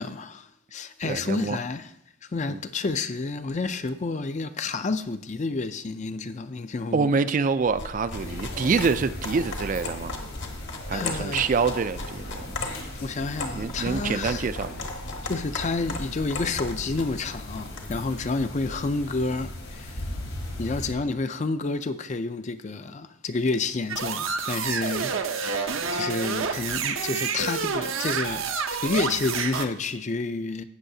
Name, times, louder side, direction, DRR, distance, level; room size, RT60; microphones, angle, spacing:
voice 1, 0.0-1.9 2.2-7.2 10.9-11.5 12.5-12.6 12.9-14.5 15.2-20.1 20.6-28.5 28.8-30.6, left 3 dB, 35° left, 0.4 m, -30 dB
voice 2, 1.0-1.6 2.5-2.6 6.9-10.2 10.9-12.5 13.5-14.9, right 5 dB, 40° right, 0.3 m, -26 dB
sound 1, 7.6-18.0, left 2 dB, 60° left, 1.2 m, -37 dB
sound 2, 8.1-20.9, left 1 dB, 80° left, 3.9 m, -38 dB
sound 3, 23.9-29.7, right 5 dB, 70° right, 0.7 m, -29 dB
18.0 x 6.4 x 2.7 m
head